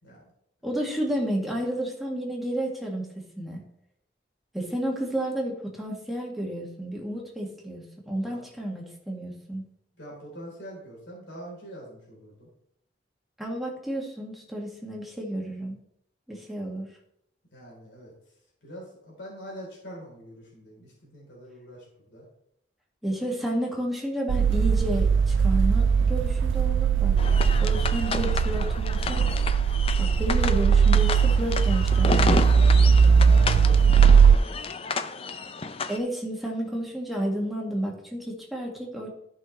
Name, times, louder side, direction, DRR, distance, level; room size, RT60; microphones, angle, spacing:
voice 1, 0.6-3.6 4.5-9.6 13.4-15.8 16.3-16.9 23.0-27.1 27.6-29.2 30.0-32.4 35.9-39.1, right 1 dB, ahead, -2 dB, 1.9 m, -31 dB
voice 2, 10.0-12.5 17.5-18.1 18.6-22.2 33.1-34.8, equal, 75° left, -3 dB, 3.7 m, -44 dB
sound 1, 24.3-34.4, right 6 dB, 85° right, 0.3 m, -19 dB
sound 2, 27.2-36.0, left 4 dB, 30° left, 0.4 m, -31 dB
13.5 x 5.8 x 3.2 m, 0.74 s
head